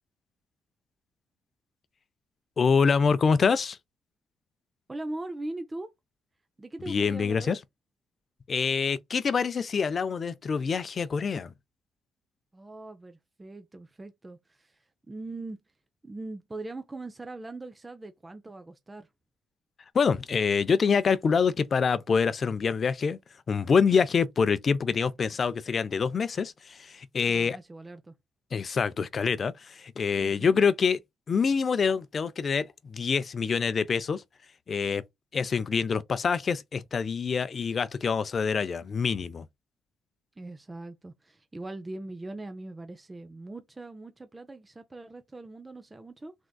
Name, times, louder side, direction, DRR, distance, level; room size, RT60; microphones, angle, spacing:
voice 1, 2.6-3.8 6.9-7.6 8.5-11.5 19.9-23.2 23.5-27.6 28.5-31.0 31.3-34.2 34.7-35.0 35.3-39.5, left 5 dB, 45° left, 0.4 m, -26 dB
voice 2, 4.9-5.9 6.6-7.6 12.5-15.6 16.0-19.1 27.3-28.1 30.2-30.6 40.4-46.3, right 2 dB, 20° right, 0.5 m, -41 dB
3.5 x 2.4 x 2.2 m
cardioid pair, 90°, 0 cm